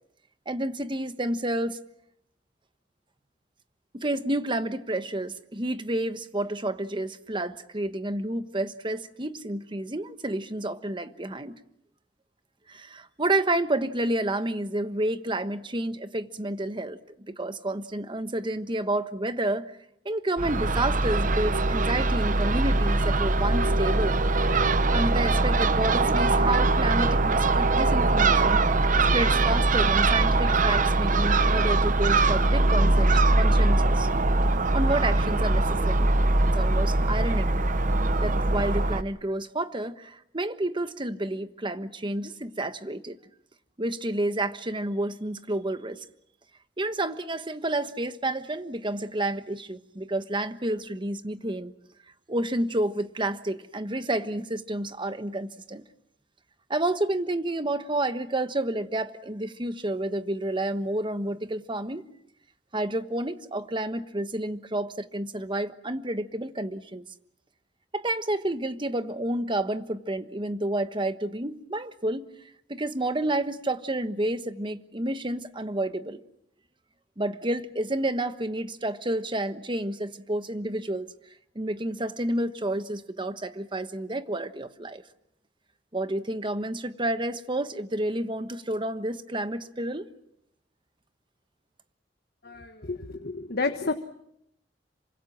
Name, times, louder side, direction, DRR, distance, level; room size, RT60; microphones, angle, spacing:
voice 1, 0.5-1.8 3.9-11.6 12.7-19.7 20.0-24.2 24.9-28.6 29.1-34.1 34.7-36.1 36.4-37.7 38.2-43.2 43.8-46.0 46.8-51.7 52.3-55.8 56.7-62.1 62.7-67.0 67.9-72.3 72.7-76.2 77.2-81.1 81.5-85.0 85.9-90.1, right 1 dB, 25° right, 1.3 m, -30 dB
Crow / Gull seagull, 20.4-39.0, right 2 dB, 45° right, 1.0 m, -22 dB
voice 2, 92.4-93.9, left 3 dB, 60° left, 1.4 m, -30 dB
27.5 x 25.0 x 7.3 m
head